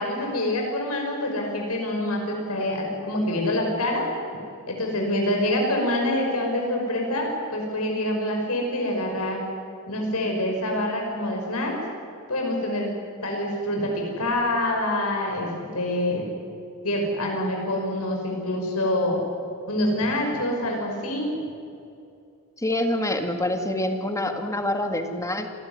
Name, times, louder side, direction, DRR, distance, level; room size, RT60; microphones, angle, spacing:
voice 1, 0.0-4.1 4.7-9.4 9.9-11.7 12.3-12.9 13.2-16.3 16.8-19.2 19.7-21.3, left 1 dB, 85° left, 1 dB, 5.7 m, -26 dB
voice 2, 22.6-25.5, left 1 dB, 15° left, 5 dB, 2.0 m, -26 dB
28.0 x 15.0 x 9.7 m, 2.6 s
head